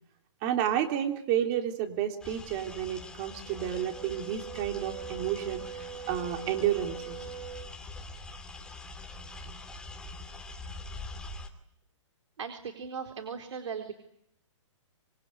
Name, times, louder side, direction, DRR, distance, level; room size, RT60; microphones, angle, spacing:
voice 1, 0.4-7.2, right 10 dB, 30° right, 6 dB, 3.5 m, -31 dB
sound 1, 2.2-11.5, left 2 dB, 5° left, 2.5 m, -44 dB
Brass instrument, 3.4-7.7, right 8 dB, 85° right, 5.7 m, -43 dB
voice 2, 12.4-13.9, right 6 dB, 70° right, 6 dB, 4.2 m, -38 dB
26.5 x 22.5 x 9.9 m, 0.72 s
hypercardioid pair, 155°, 16 cm